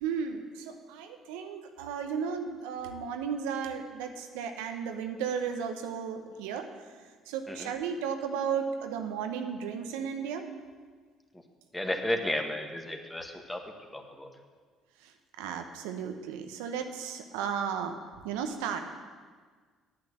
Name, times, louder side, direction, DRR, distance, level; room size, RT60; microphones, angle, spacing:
voice 1, 0.0-6.7 7.3-10.4 15.4-18.0 18.2-19.0, right 7 dB, 80° right, 6 dB, 0.9 m, -34 dB
voice 2, 11.7-13.6 13.9-14.3, left 1 dB, 10° left, 4 dB, 1.7 m, -33 dB
8.8 x 8.8 x 7.3 m, 1.5 s
hypercardioid pair, 55°, 0 cm